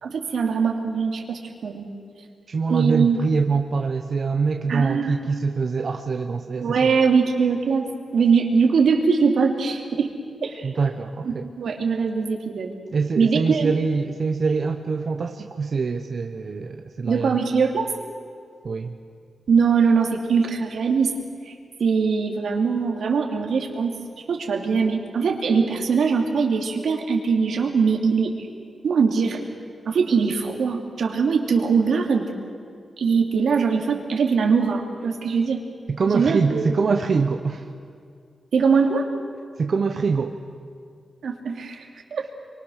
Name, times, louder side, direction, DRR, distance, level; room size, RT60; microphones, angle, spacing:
voice 1, 0.0-1.8 2.7-3.2 4.7-5.1 6.6-10.1 10.4-10.7 11.2-12.7 13.2-13.7 17.1-17.9 19.5-21.1 21.5-21.6 21.8-23.9 24.3-28.3 28.8-29.4 29.8-32.3 33.0-35.6 36.1-36.7 38.5-39.1 41.2-42.3, right 5 dB, 85° right, 2 dB, 2.9 m, -21 dB
voice 2, 2.5-6.9 10.6-11.5 12.9-17.4 18.6-19.0 35.9-37.7 39.6-40.4, right 4 dB, 50° right, 5 dB, 1.0 m, -24 dB
28.0 x 24.0 x 6.5 m, 2.2 s
wide cardioid pair, 170°, 0 cm